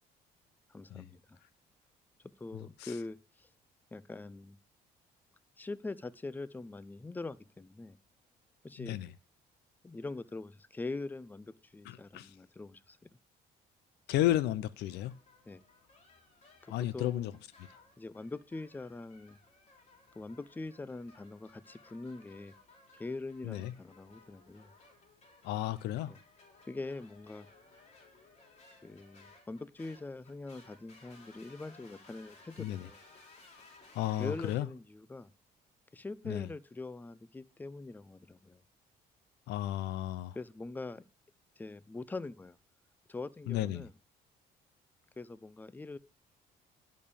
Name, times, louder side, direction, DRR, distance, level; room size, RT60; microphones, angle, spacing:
voice 1, 0.7-1.4 2.2-3.5 3.9-4.6 5.6-8.0 8.6-9.0 9.8-13.1 15.5-15.6 16.6-17.4 18.0-19.4 20.2-22.5 22.9-24.7 26.1-26.2 26.7-27.5 28.8-33.0 34.1-35.3 35.9-38.6 40.3-41.0 41.6-42.6 43.1-43.9 45.2-46.0, left 3 dB, 10° left, 0.5 m, -43 dB
voice 2, 8.8-9.1 11.9-12.3 14.1-15.1 16.7-17.3 23.4-23.7 25.4-26.1 32.6-32.9 33.9-34.7 36.3-36.5 39.5-40.3 43.5-43.8, left 13 dB, 85° left, 0.7 m, -33 dB
sound 1, 14.7-34.6, left 3 dB, 40° left, 3.3 m, -60 dB
11.0 x 5.2 x 6.9 m
cardioid pair, 110°, 17 cm